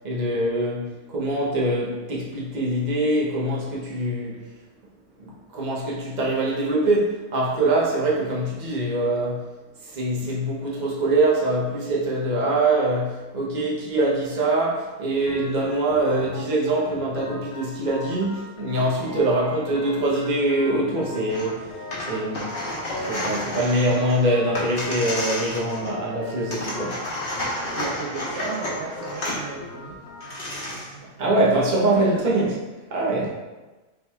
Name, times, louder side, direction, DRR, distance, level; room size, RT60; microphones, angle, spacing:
voice 1, 0.0-4.4 5.2-9.4 9.8-21.6 22.1-22.5 23.1-27.0 31.2-32.4 32.9-33.3, right 1 dB, 40° right, -4 dB, 0.9 m, -23 dB
Organ, 15.3-30.3, left 2 dB, 65° left, 0.9 m, -39 dB
sound 1, 21.3-21.5 21.8-26.1 26.5-29.4 29.9-30.0 30.2-30.9, left 1 dB, 50° left, 1.2 m, -31 dB
voice 2, 27.8-31.6 31.9-32.6 33.2-33.3, right 3 dB, 70° right, -3 dB, 0.9 m, -35 dB
5.5 x 3.4 x 2.3 m, 1.2 s
omnidirectional pair, 1.3 m